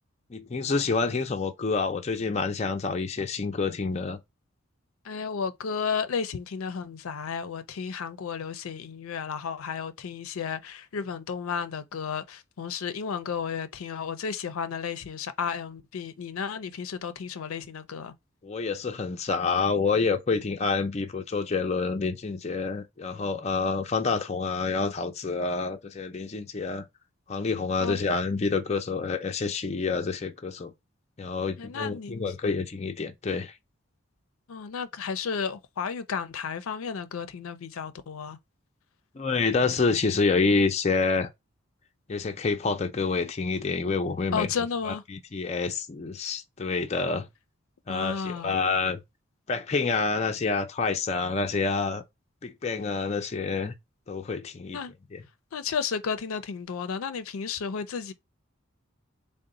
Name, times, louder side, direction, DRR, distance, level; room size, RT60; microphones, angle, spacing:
voice 1, 0.3-4.2 18.4-26.8 27.3-30.7 31.2-33.5 39.2-41.3 42.1-44.5 44.9-47.3 47.9-49.0 49.5-52.0 52.4-53.8 54.1-54.8 55.1-55.2, left 4 dB, 30° left, 0.4 m, -28 dB
voice 2, 5.0-18.1 27.8-28.0 31.6-32.3 34.5-38.4 44.3-45.0 47.9-48.6 54.7-54.9 55.5-58.1, left 6 dB, 85° left, 0.5 m, -33 dB
3.9 x 2.1 x 3.7 m
head